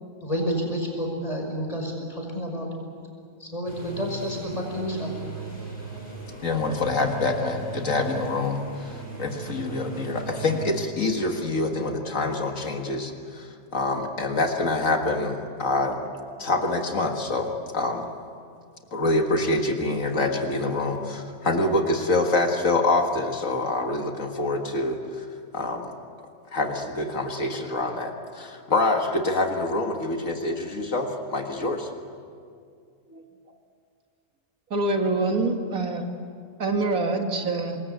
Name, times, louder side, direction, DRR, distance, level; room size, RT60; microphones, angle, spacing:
voice 1, 0.2-2.7 3.4-5.1, equal, 25° left, 1 dB, 5.6 m, -29 dB
sound 1, 3.6-10.7, right 3 dB, 40° left, 7.2 m, -38 dB
voice 2, 6.4-16.0 16.4-18.1 18.9-25.3 25.5-25.9 26.5-31.9, left 2 dB, 65° left, 4 dB, 2.1 m, -26 dB
voice 3, 34.7-36.0 36.6-37.8, right 2 dB, 80° right, 4 dB, 2.5 m, -25 dB
26.0 x 21.0 x 8.2 m, 2.2 s
omnidirectional pair, 1.5 m